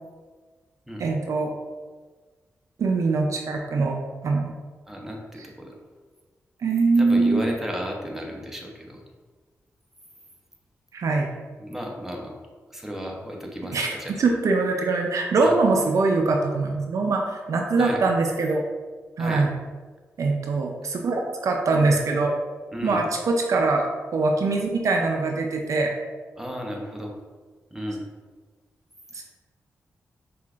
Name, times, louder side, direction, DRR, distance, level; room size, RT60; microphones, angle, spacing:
voice 1, 1.0-1.6 2.8-4.0 4.2-4.5 6.6-7.5 10.9-11.3 13.7-18.6 19.2-19.5 20.2-22.3 22.8-25.9 29.1-29.2, right 3 dB, 70° right, 2 dB, 0.4 m, -23 dB
voice 2, 4.9-5.8 7.0-9.0 11.6-12.4 12.7-14.2 15.4-15.5 17.8-18.0 19.2-19.5 22.7-23.0 26.4-27.1 27.7-28.1, equal, 5° right, 0 dB, 0.7 m, -33 dB
5.4 x 2.5 x 2.4 m, 1.4 s
cardioid pair, 60°, 6 cm